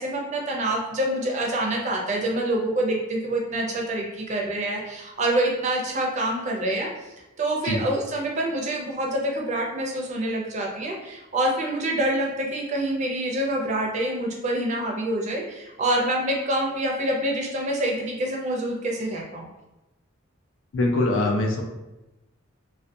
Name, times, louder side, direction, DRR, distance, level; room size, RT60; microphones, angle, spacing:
voice 1, 0.0-6.9 7.4-19.4, right 1 dB, 35° right, 0 dB, 0.4 m, -26 dB
voice 2, 20.7-21.6, left 2 dB, 65° left, 1 dB, 0.4 m, -22 dB
2.3 x 2.1 x 2.6 m, 0.98 s
head